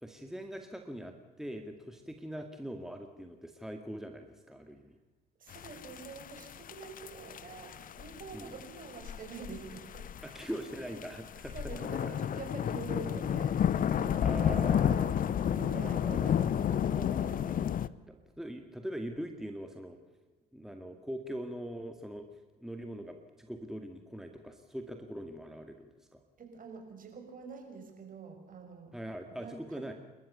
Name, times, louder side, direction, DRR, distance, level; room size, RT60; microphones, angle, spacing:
voice 1, 0.0-5.0 8.3-8.5 10.2-12.2 14.2-14.9 15.7-16.5 16.9-20.0 20.5-22.3 22.6-26.2 28.9-29.9, equal, ahead, 5 dB, 2.0 m, -42 dB
voice 2, 5.4-10.1 10.4-10.7 11.5-17.4 26.4-29.0 29.3-29.9, right 4 dB, 45° right, 3 dB, 6.0 m, -46 dB
sound 1, 5.5-17.9, left 9 dB, 45° left, 0.8 m, -32 dB
29.0 x 13.5 x 7.0 m, 1.3 s
hypercardioid pair, 60°, 20 cm